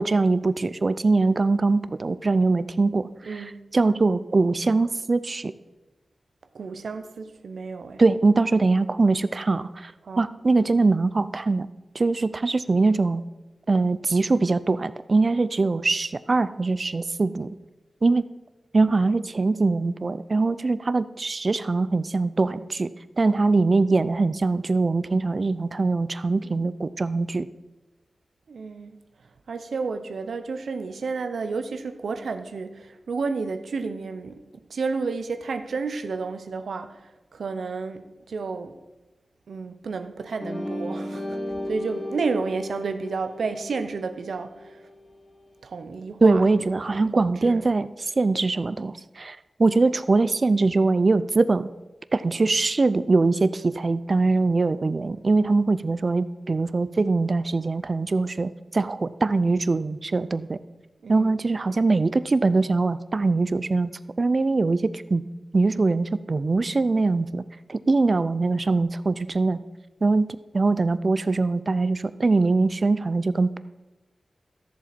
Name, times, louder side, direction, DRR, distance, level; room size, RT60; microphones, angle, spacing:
voice 1, 0.0-3.4 3.7-5.5 8.0-9.9 10.2-11.7 11.9-13.2 13.7-17.5 18.0-18.3 18.7-22.9 23.2-27.5 46.2-51.7 52.1-60.6 61.1-63.9 64.2-65.2 65.5-67.4 67.7-69.6 70.0-73.6, right 3 dB, 50° right, 0.4 m, -22 dB
voice 2, 3.3-3.6 6.5-8.0 10.0-10.3 28.5-29.0 29.5-34.4 34.7-38.8 39.5-41.4 41.7-44.9 45.6-46.5 46.8-47.6 61.0-61.3, right 4 dB, 85° right, 0.7 m, -31 dB
sound 1, 40.4-45.0, left 1 dB, 25° left, 1.8 m, -35 dB
13.5 x 7.2 x 4.3 m
wide cardioid pair, 70°, 0 cm